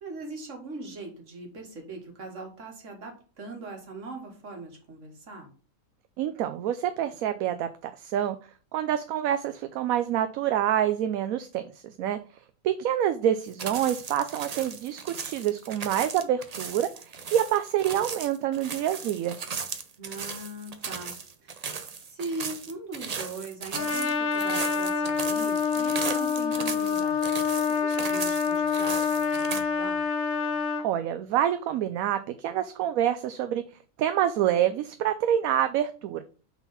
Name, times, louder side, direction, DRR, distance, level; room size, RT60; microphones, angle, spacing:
voice 1, 0.0-5.5 20.0-21.1 21.4-21.8 22.0-27.2 27.7-29.1 29.4-30.0, right 2 dB, 60° right, 2 dB, 2.0 m, -40 dB
voice 2, 6.2-8.4 8.7-12.2 12.6-19.4 30.8-33.6 34.0-36.2, right 10 dB, 80° right, 9 dB, 1.0 m, -27 dB
sound 1, 13.4-29.6, right 5 dB, 45° right, 0.5 m, -37 dB
Trumpet, 23.7-30.9, left 6 dB, 45° left, 1.2 m, -27 dB
5.8 x 4.1 x 5.6 m, 0.39 s
omnidirectional pair, 1.5 m